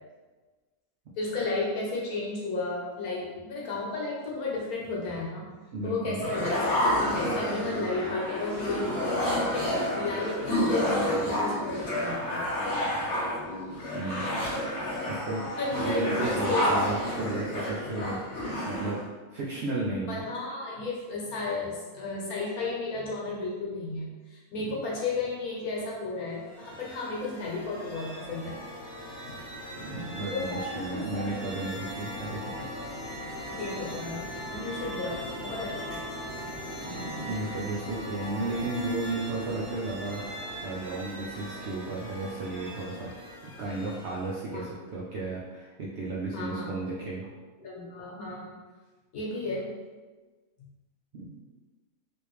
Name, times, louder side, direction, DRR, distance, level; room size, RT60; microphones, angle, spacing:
voice 1, 1.2-5.5 5.8-9.0 9.4-12.5 13.0-13.2 15.6-16.7 17.4-17.5 20.0-28.6 29.2-29.4 29.9-31.3 33.4-36.4 44.5-44.7 46.3-47.0 47.6-48.6 49.1-49.7 50.6-50.7, left 3 dB, 75° left, -4 dB, 1.4 m, -34 dB
voice 2, 5.7-6.3 13.9-14.4 15.1-19.0 19.3-20.2 29.8-32.7 36.9-43.1 43.4-47.3 51.1-51.3, right 2 dB, 65° right, -5 dB, 0.6 m, -34 dB
sound 1, 6.2-19.0, equal, 55° left, 1.2 m, -29 dB
sound 2, 26.3-44.5, equal, 25° left, 0.9 m, -40 dB
3.4 x 2.6 x 3.1 m, 1.3 s
omnidirectional pair, 1.6 m